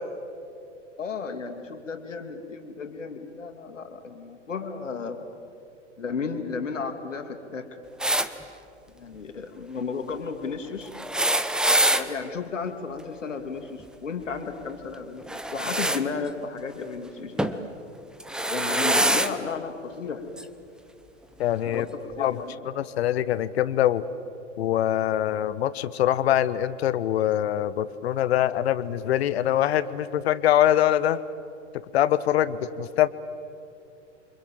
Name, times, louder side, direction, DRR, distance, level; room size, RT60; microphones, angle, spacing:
voice 1, 1.0-5.2 6.0-7.8 8.9-10.9 12.0-17.7 18.5-20.3 21.7-21.9 22.2-22.7, left 5 dB, 80° left, 6 dB, 2.9 m, -34 dB
sound 1, 8.0-8.3 10.9-12.1 15.3-16.0 17.4-17.6 18.2-19.3 20.4-20.5 21.7-21.8, right 1 dB, ahead, 0.8 m, -24 dB
voice 2, 21.4-21.8 22.2-22.4 22.7-24.0 24.6-31.2 31.7-33.1, left 12 dB, 55° left, 15 dB, 1.2 m, -23 dB
28.5 x 25.5 x 7.6 m, 2.6 s
figure-of-eight pair, 115°, 37 cm